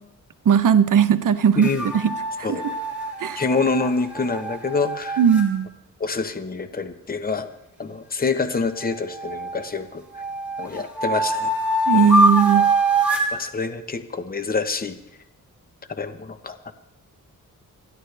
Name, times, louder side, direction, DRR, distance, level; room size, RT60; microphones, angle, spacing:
voice 1, 0.5-1.7 2.0-2.1 2.5-2.6 3.2-3.4 5.2-5.7 11.9-12.7, right 8 dB, 65° right, 11 dB, 0.9 m, -17 dB
voice 2, 1.6-1.9 2.4-2.6 3.4-5.2 6.0-7.5 7.8-10.2 10.6-11.5 11.9-12.3 13.3-15.0 15.9-16.7, left 4 dB, 25° left, 9 dB, 1.1 m, -26 dB
sound 1, 1.6-5.5 8.4-9.7 10.2-13.4, right 1 dB, 5° right, 3.2 m, -24 dB
29.5 x 11.0 x 3.4 m, 0.89 s
wide cardioid pair, 110°, 33 cm